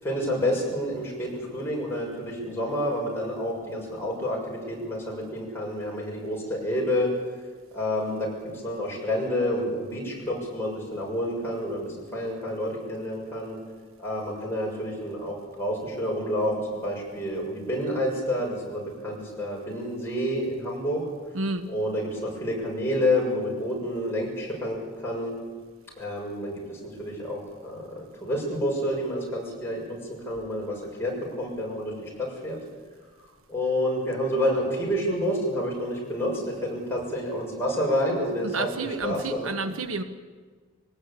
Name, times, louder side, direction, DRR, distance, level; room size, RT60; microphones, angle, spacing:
voice 1, 0.0-7.1 7.7-8.3 8.6-13.6 14.0-21.0 21.7-24.8 25.0-25.3 26.0-30.0 30.2-32.6 33.5-39.5, equal, 10° left, -3 dB, 6.5 m, -29 dB
voice 2, 21.3-21.7 38.4-40.0, right 3 dB, 85° right, 9 dB, 1.4 m, -30 dB
22.0 x 18.5 x 8.5 m, 1.4 s
head